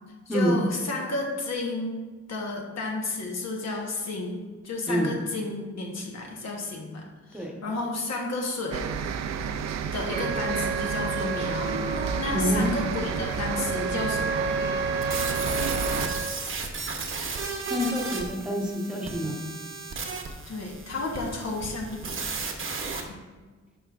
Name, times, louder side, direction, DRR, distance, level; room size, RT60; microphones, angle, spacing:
voice 1, 0.3-2.0 2.3-4.4 4.6-8.8 9.9-11.8 12.2-14.4 20.5-22.2 23.0-23.2, left 2 dB, 65° left, 0 dB, 1.2 m, -32 dB
sound 1, 8.7-16.1, right 7 dB, 65° right, 0.4 m, -31 dB
Trumpet, 10.1-16.3, right 3 dB, 40° left, 0.9 m, -32 dB
voice 2, 12.3-12.7 17.7-19.4, equal, 5° right, -1 dB, 1.1 m, -27 dB
sound 2, 15.0-23.0, right 4 dB, 45° right, 0.9 m, -34 dB
12.0 x 5.1 x 2.5 m, 1.4 s
wide cardioid pair, 170°, 29 cm